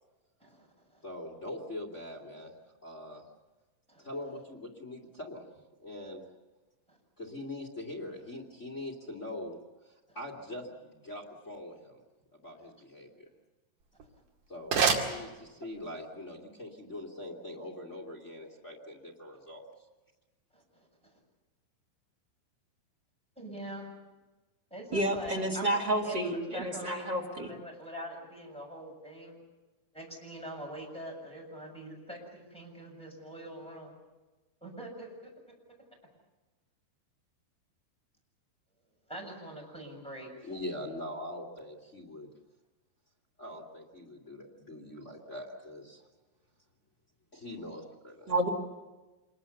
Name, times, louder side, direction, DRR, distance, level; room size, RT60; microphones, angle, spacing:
voice 1, 0.4-1.0 3.9-4.1 6.9-7.0 10.1-10.2 20.5-21.2 23.4-23.9 24.7-29.4 29.9-33.9 34.6-35.5 39.1-40.3, right 1 dB, ahead, -1 dB, 6.6 m, -44 dB
voice 2, 1.0-2.5 2.8-3.2 4.0-5.4 5.8-6.2 7.2-9.6 9.8-12.0 12.3-13.3 14.5-19.6 40.4-42.3 43.4-46.1 47.3-48.3, left 1 dB, 25° left, 1 dB, 1.6 m, -42 dB
sound 1, 13.8-15.9, right 6 dB, 50° right, 3.5 m, -31 dB
voice 3, 24.9-27.5 48.3-48.5, right 1 dB, 35° right, 2 dB, 2.0 m, -30 dB
27.0 x 22.0 x 7.1 m, 1.2 s
omnidirectional pair, 5.3 m